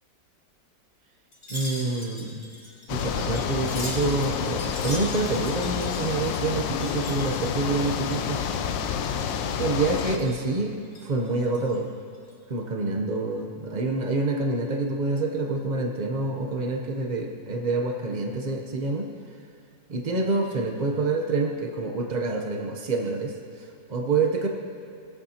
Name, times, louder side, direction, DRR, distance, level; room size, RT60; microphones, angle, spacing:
Wind chime, 1.3-8.4 8.7-9.5 9.9-10.4 10.8-11.8 12.1-12.3, left 1 dB, 45° left, 2.6 m, -41 dB
voice 1, 1.5-2.4 2.9-8.4 9.6-10.7 11.0-11.9 12.5-19.1 19.9-24.5, right 3 dB, 85° right, 2 dB, 0.4 m, -27 dB
sound 1, 2.9-10.2, left 7 dB, 85° left, 1.3 m, -29 dB
20.0 x 8.5 x 2.8 m, 2.3 s
omnidirectional pair, 2.0 m